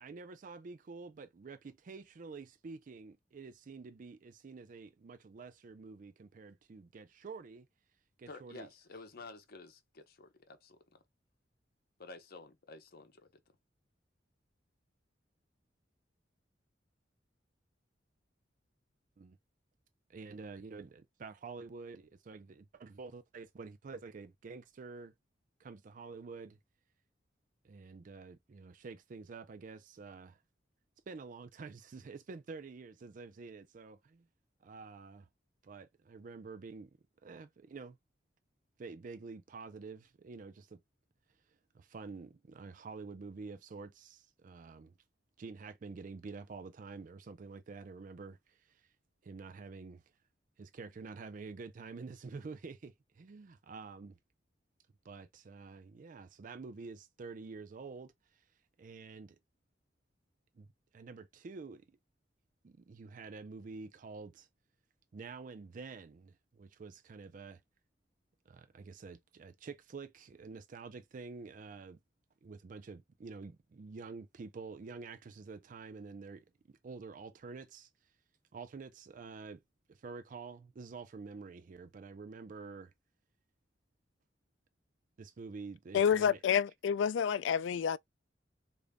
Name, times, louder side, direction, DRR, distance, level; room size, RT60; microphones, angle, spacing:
voice 1, 0.0-7.7 8.2-8.7 19.2-19.4 20.1-25.1 25.6-26.6 27.6-30.4 31.1-34.3 34.6-35.3 35.6-37.0 37.2-38.0 38.8-40.8 41.7-44.9 45.4-48.9 49.2-50.0 50.6-54.2 55.0-58.5 58.8-59.4 60.5-60.7 60.9-62.0 62.6-64.5 65.1-67.6 68.5-72.0 72.4-76.5 76.8-77.9 78.5-79.6 79.9-82.9 85.2-86.4, right 4 dB, 45° right, 0.4 m, -48 dB
voice 2, 8.3-11.0 12.0-13.3, left 3 dB, 55° left, 0.8 m, -51 dB
voice 3, 85.9-88.0, left 8 dB, 90° left, 0.3 m, -29 dB
4.9 x 2.6 x 2.2 m
head